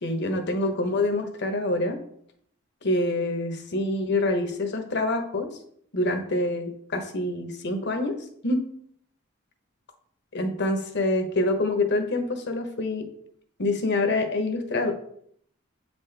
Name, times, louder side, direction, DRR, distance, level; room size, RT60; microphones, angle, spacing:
voice 1, 0.0-2.0 2.8-5.5 5.9-8.2 8.4-8.6 10.3-13.0 13.6-14.9, left 2 dB, 55° left, 6 dB, 1.0 m, -26 dB
8.1 x 4.2 x 3.4 m, 0.65 s
head